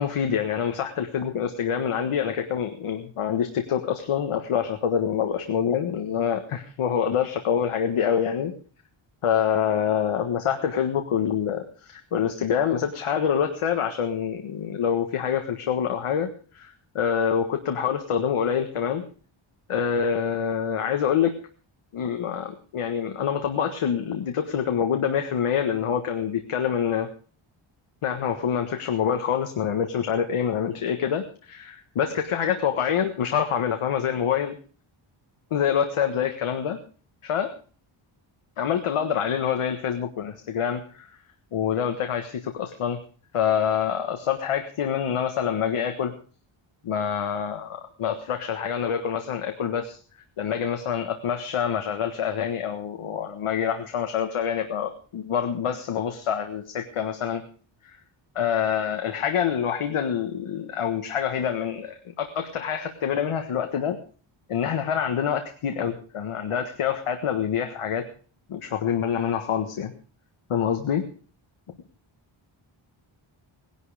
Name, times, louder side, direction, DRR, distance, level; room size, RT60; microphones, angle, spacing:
voice 1, 0.0-8.5 9.2-16.3 16.5-19.0 19.7-21.3 21.9-27.1 28.0-34.6 35.5-36.8 37.2-37.5 38.6-41.1 41.5-43.0 43.3-46.1 46.8-50.0 50.4-57.4 57.8-58.0 58.3-64.0 64.5-68.1 68.5-69.9 70.5-71.1 71.7-71.8, left 8 dB, 85° left, 5 dB, 1.6 m, -26 dB
18.0 x 11.5 x 5.0 m, 0.40 s
wide cardioid pair, 140°, 50 cm